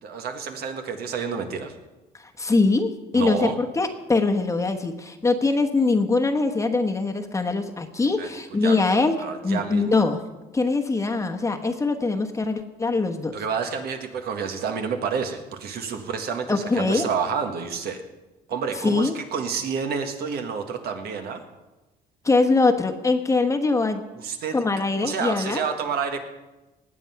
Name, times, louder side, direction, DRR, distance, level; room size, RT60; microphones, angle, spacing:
voice 1, 0.0-1.7 3.1-3.6 8.2-8.3 8.6-10.0 13.3-18.0 18.5-21.4 24.1-24.5 25.0-26.2, right 6 dB, 70° right, 6 dB, 1.7 m, -29 dB
voice 2, 2.2-9.1 9.4-10.2 10.5-13.4 16.5-17.1 18.8-19.1 22.2-24.0 24.5-25.6, left 3 dB, 20° left, 5 dB, 1.1 m, -22 dB
19.0 x 7.7 x 5.8 m, 1.1 s
cardioid pair, 110°, 17 cm